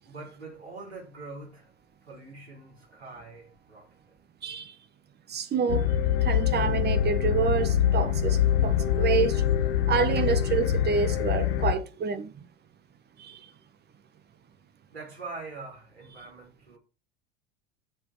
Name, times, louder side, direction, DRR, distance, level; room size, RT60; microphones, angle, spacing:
voice 1, 0.0-4.2 14.9-16.8, right 3 dB, 85° right, 5.6 m, -44 dB
voice 2, 4.4-4.7 5.3-5.9 6.2-9.4 9.9-12.3 13.2-13.5, right 6 dB, 30° right, 1.5 m, -28 dB
sound 1, 5.7-11.7, left 10 dB, 65° left, 1.3 m, -24 dB
14.0 x 5.0 x 5.5 m
figure-of-eight pair, 75°, 33 cm